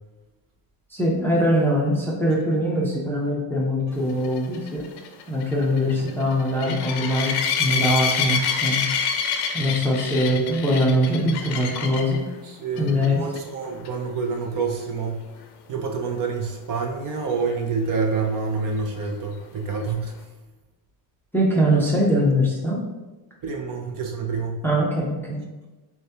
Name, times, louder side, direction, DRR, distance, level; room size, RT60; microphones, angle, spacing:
voice 1, 0.9-4.9 5.3-7.3 7.6-8.8 9.5-12.2 12.8-13.2 21.3-22.8 24.6-25.4, equal, 5° left, -4 dB, 0.5 m, -22 dB
sound 1, 4.2-12.2 12.8-13.1 13.4-13.5 13.8-13.9 17.5-17.6, left 6 dB, 55° left, 0.6 m, -27 dB
voice 2, 12.4-15.3 15.7-20.1 23.4-24.6, right 4 dB, 45° right, 1 dB, 0.6 m, -27 dB
6.6 x 2.3 x 2.8 m, 1.1 s
cardioid pair, 150°, 48 cm